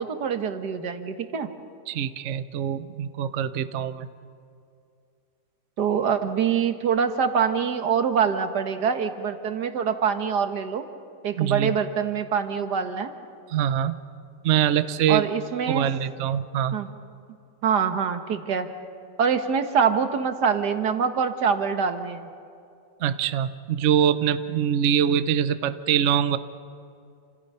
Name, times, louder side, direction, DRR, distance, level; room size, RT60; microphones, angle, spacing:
voice 1, 0.0-1.5 5.8-10.8 11.2-13.1 15.1-15.9 16.7-16.9 17.6-18.7 19.2-22.3, right 7 dB, 55° right, 8 dB, 1.8 m, -24 dB
voice 2, 1.9-4.1 11.4-11.8 13.5-14.0 14.4-15.3 15.7-16.7 23.0-26.4, right 9 dB, 80° right, 12 dB, 0.6 m, -24 dB
29.0 x 27.0 x 5.6 m, 2.4 s
omnidirectional pair, 2.3 m